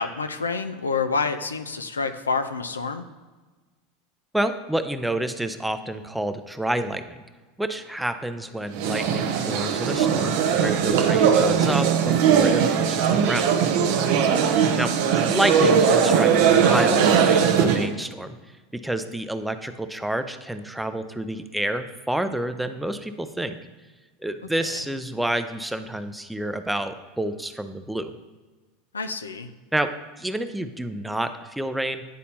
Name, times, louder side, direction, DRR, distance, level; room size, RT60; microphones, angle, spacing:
voice 1, 0.0-3.0 24.6-24.7 28.9-29.5, left 4 dB, 90° left, 9 dB, 0.4 m, -28 dB
voice 2, 4.3-7.2 7.6-13.5 14.8-18.4 18.7-23.6 24.2-28.1 29.7-29.9 30.2-32.0, right 1 dB, 5° right, 9 dB, 0.5 m, -29 dB
sound 1, 8.7-17.9, right 7 dB, 60° right, 0.7 m, -20 dB
10.0 x 4.1 x 2.8 m, 1.3 s
hypercardioid pair, 85°, 0 cm